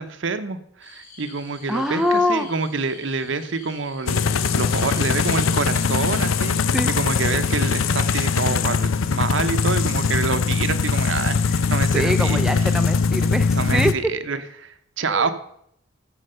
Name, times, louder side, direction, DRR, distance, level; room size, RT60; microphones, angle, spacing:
voice 1, 0.0-6.6 6.9-12.8 13.5-15.3, right 4 dB, 65° right, 10 dB, 0.8 m, -27 dB
sound 1, 0.8-6.5, left 3 dB, 40° left, 4.6 m, -46 dB
voice 2, 1.7-2.5 6.7-6.9 11.9-14.1 15.1-15.3, left 1 dB, 5° right, 6 dB, 0.5 m, -23 dB
sound 2, 4.1-13.9, left 5 dB, 80° left, 0.5 m, -21 dB
13.0 x 4.7 x 6.6 m, 0.71 s
head